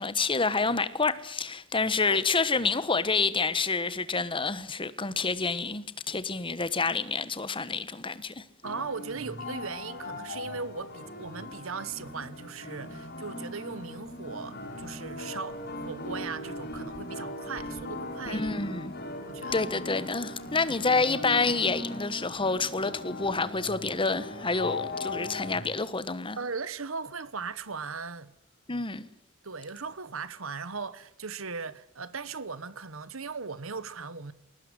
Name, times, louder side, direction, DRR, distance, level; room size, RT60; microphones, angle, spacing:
voice 1, 0.0-8.4 18.3-18.9 19.5-26.4 28.7-29.1, left 4 dB, 25° left, 1.4 m, -28 dB
sound 1, 8.6-25.6, left 1 dB, 50° left, 6.8 m, -39 dB
voice 2, 8.6-18.5 19.3-19.6 26.4-28.3 29.4-34.3, right 4 dB, 70° right, 1.3 m, -38 dB
21.5 x 19.0 x 9.9 m
head